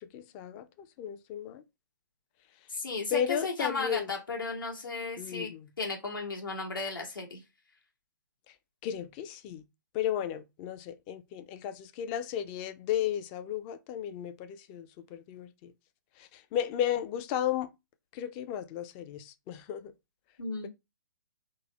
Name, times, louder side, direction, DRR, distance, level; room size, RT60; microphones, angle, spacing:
voice 1, 0.0-1.6 3.1-4.1 5.2-5.7 8.8-9.6 9.9-15.7 16.2-17.7 18.1-19.9, left 10 dB, 30° left, 0.4 m, -34 dB
voice 2, 2.7-5.5 5.8-7.4 20.4-20.7, left 3 dB, 80° left, 1.6 m, -35 dB
3.8 x 2.0 x 4.0 m
figure-of-eight pair, 125°, 11 cm